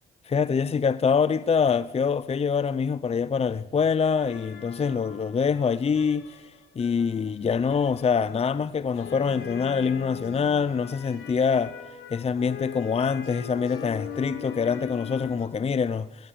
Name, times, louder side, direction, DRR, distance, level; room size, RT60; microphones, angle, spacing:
voice 1, 0.3-6.4 6.8-11.8 12.1-16.3, left 6 dB, 30° left, 0.7 m, -25 dB
sound 1, 4.0-15.5, left 9 dB, 90° left, 3.7 m, -41 dB
20.0 x 19.5 x 7.5 m
cardioid pair, 90°, 20 cm